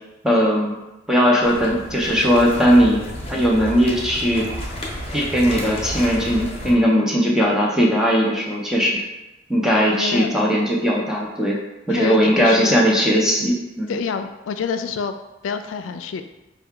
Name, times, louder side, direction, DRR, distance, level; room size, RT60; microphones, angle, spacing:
voice 1, 0.2-0.8 1.1-3.0 3.3-4.5 5.1-9.0 9.5-11.6 11.9-14.0, equal, 5° right, -3 dB, 0.7 m, -18 dB
sound 1, 1.4-6.7, left 1 dB, 30° left, 0.8 m, -32 dB
voice 2, 9.8-10.3 11.9-12.9 13.9-15.1 15.4-16.2, left 5 dB, 85° left, 7 dB, 0.3 m, -27 dB
5.5 x 2.3 x 3.6 m, 1.0 s
head